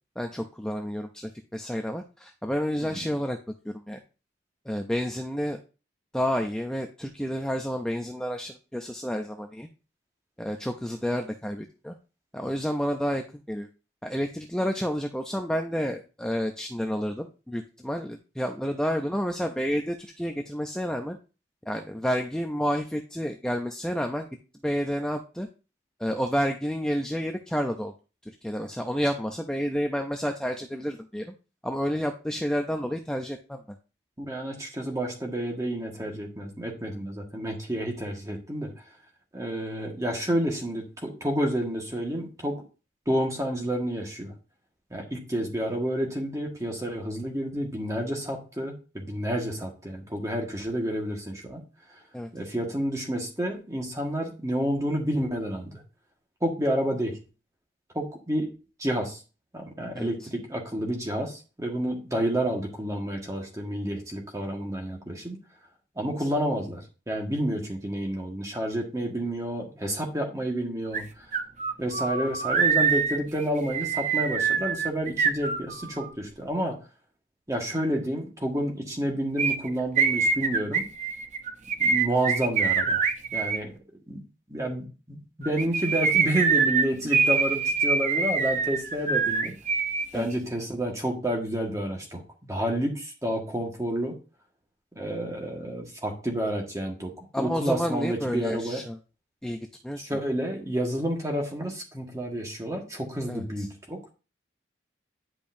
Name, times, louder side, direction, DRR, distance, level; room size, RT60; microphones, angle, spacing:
voice 1, 0.2-3.4 3.7-4.0 4.7-5.6 6.1-9.7 10.4-12.0 12.3-13.7 14.0-21.2 21.7-24.3 24.6-25.5 26.0-27.9 28.4-31.3 31.6-33.6 52.1-52.3 59.9-60.3 66.2-66.3 90.1-90.3 97.3-99.0 99.4-100.0 103.3-103.7, equal, 5° left, 4 dB, 0.4 m, -30 dB
voice 2, 34.2-38.7 39.3-42.6 43.1-44.3 44.9-51.6 51.9-52.0 52.3-55.8 56.4-57.2 57.9-58.5 58.8-59.2 59.5-65.4 65.9-71.3 71.8-76.8 77.5-80.9 81.8-83.0 83.3-83.7 84.1-84.2 84.5-89.5 90.1-94.2 94.9-98.8 100.0-104.1, right 1 dB, 15° right, 1 dB, 1.5 m, -30 dB
sound 1, 70.9-71.0 71.3-76.1 79.4-83.6 85.4-90.1 90.3-90.4, right 5 dB, 40° right, 0.7 m, -25 dB
10.5 x 5.2 x 2.6 m, 0.32 s
head